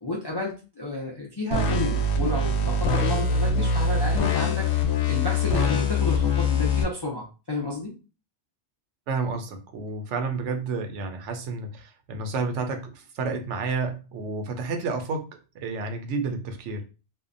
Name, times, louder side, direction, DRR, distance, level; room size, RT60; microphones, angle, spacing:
voice 1, 0.0-4.7 5.1-7.9, left 2 dB, 40° left, -4 dB, 0.3 m, -31 dB
sound 1, 1.5-6.8, left 3 dB, 75° left, 0.9 m, -23 dB
voice 2, 9.1-15.3 15.5-16.9, right 4 dB, 80° right, 6 dB, 0.9 m, -30 dB
2.6 x 2.2 x 2.5 m, 0.32 s
omnidirectional pair, 1.2 m